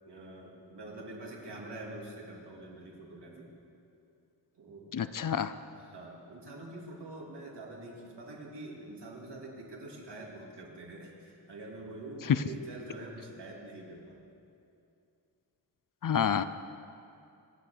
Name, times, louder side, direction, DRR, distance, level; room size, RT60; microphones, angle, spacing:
voice 1, 0.0-3.5 4.5-4.9 5.7-14.2, right 2 dB, 75° right, -2 dB, 3.1 m, -45 dB
voice 2, 4.9-5.5 16.0-16.4, left 8 dB, 50° left, 13 dB, 0.5 m, -28 dB
24.5 x 8.4 x 6.6 m, 2.6 s
wide cardioid pair, 165°, 41 cm